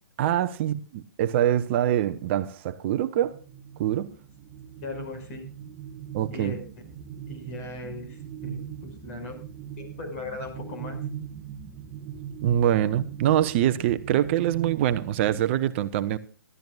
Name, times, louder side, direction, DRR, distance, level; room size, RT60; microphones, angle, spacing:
voice 1, 0.2-3.4 3.8-4.1 6.1-6.5 12.4-16.2, right 11 dB, 35° right, 0.8 m, -24 dB
sound 1, 3.2-15.4, right 8 dB, 20° right, 1.2 m, -40 dB
voice 2, 4.8-5.4 6.3-6.6 7.3-9.3 9.8-11.0, left 2 dB, 40° left, 5.8 m, -38 dB
24.0 x 12.5 x 2.4 m
figure-of-eight pair, 130°, 11 cm